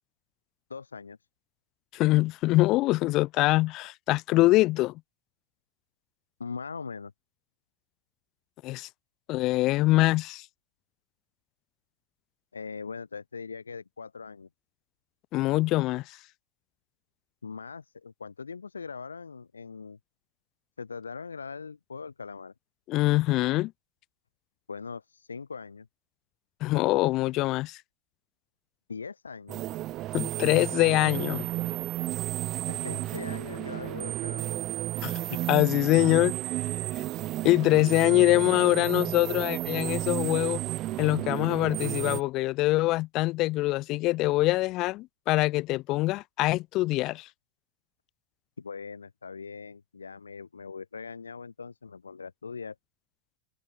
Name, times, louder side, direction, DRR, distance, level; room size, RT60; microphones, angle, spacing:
voice 1, 0.7-1.2 6.4-7.1 12.5-14.5 17.4-20.0 20.8-22.5 24.7-25.9 28.9-29.6 32.7-34.6 48.6-52.8, left 5 dB, 75° left, 0.7 m, -41 dB
voice 2, 1.9-4.9 8.6-8.9 9.3-10.4 15.3-16.2 22.9-23.7 26.6-27.8 30.1-31.5 35.0-36.4 37.4-40.6 41.0-47.3, left 19 dB, 40° left, 0.5 m, -24 dB
sound 1, 29.5-42.2, right 15 dB, 35° right, 1.1 m, -32 dB
figure-of-eight pair, 90°, 0 cm